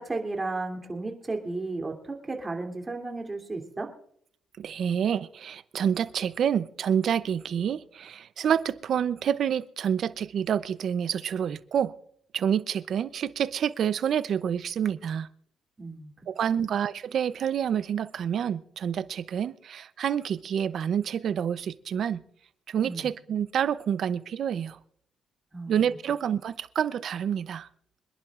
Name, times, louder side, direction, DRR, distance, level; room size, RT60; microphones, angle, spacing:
voice 1, 0.0-3.9 15.8-16.1 22.8-23.1 25.5-25.7, right 3 dB, 25° right, 2.9 m, -34 dB
voice 2, 4.6-11.9 12.3-15.3 16.3-22.2 22.7-24.8 25.7-27.7, right 8 dB, 65° right, 0.6 m, -28 dB
26.0 x 11.0 x 2.5 m
cardioid pair, 90°, 0 cm